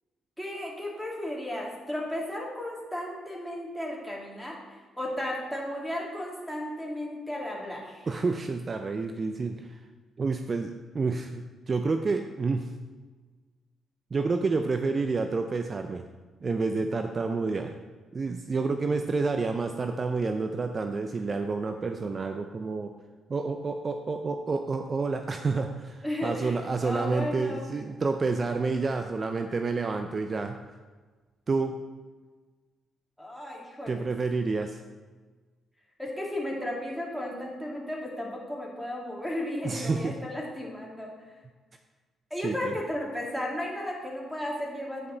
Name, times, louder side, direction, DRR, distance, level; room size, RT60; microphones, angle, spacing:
voice 1, 0.4-8.1 26.0-27.7 33.2-34.1 36.0-41.3 42.3-45.1, left 1 dB, ahead, -3 dB, 2.6 m, -34 dB
voice 2, 8.1-9.8 10.2-12.7 14.1-16.0 16.4-17.8 18.1-22.9 23.3-30.6 31.5-31.8 33.9-34.8 39.6-40.2 42.4-42.7, right 4 dB, 40° right, 6 dB, 0.5 m, -29 dB
9.2 x 5.4 x 4.0 m, 1.4 s
supercardioid pair, 60°, 0 cm